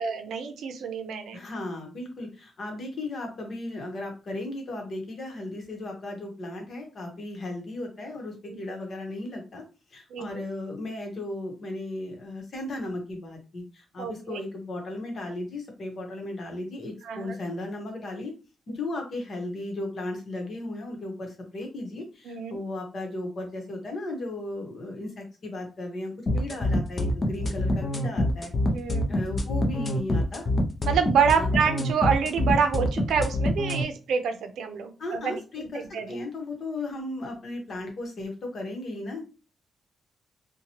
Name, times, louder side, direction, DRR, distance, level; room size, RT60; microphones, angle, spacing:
voice 1, 0.0-1.5 8.5-8.6 10.1-10.3 14.0-14.4 17.0-17.4 22.3-22.6 26.3-26.4 28.7-29.1 30.9-35.7 35.9-36.1, right 6 dB, 90° right, 6 dB, 0.5 m, -27 dB
voice 2, 1.3-9.6 9.9-18.3 18.7-28.5 29.1-30.5 31.3-31.5 35.0-39.2, left 2 dB, 50° left, 2 dB, 1.0 m, -35 dB
sound 1, 26.3-33.8, left 1 dB, 35° left, 0.5 m, -25 dB
2.9 x 2.2 x 2.8 m, 0.33 s
wide cardioid pair, 135°, 0 cm